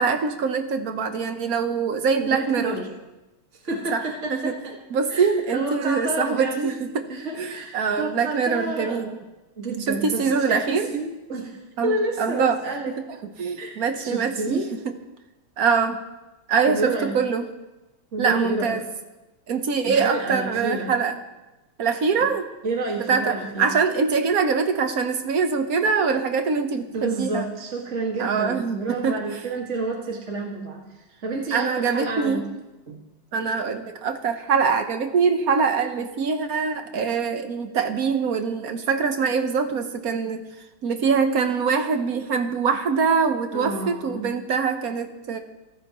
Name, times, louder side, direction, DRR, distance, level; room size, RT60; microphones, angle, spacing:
voice 1, 0.0-2.8 3.9-4.6 4.9-7.0 7.4-9.2 9.9-10.9 11.8-12.6 13.4-14.9 15.6-16.0 16.5-17.5 18.2-18.8 19.5-21.2 21.8-22.5 23.1-27.5 28.2-29.2 31.5-32.4 33.3-40.5 40.8-45.4, right 5 dB, 50° right, 7 dB, 1.3 m, -23 dB
voice 2, 2.2-2.9 3.6-4.8 5.1-6.6 7.1-9.0 9.6-12.9 13.6-13.7 14.0-14.7 16.7-17.2 18.1-18.8 19.8-20.9 22.2-22.3 22.6-23.7 26.9-30.8 31.2-32.4 32.9-33.0 43.5-44.4, right 2 dB, 35° right, -1 dB, 2.1 m, -29 dB
25.0 x 13.5 x 3.1 m, 1.0 s
omnidirectional pair, 2.4 m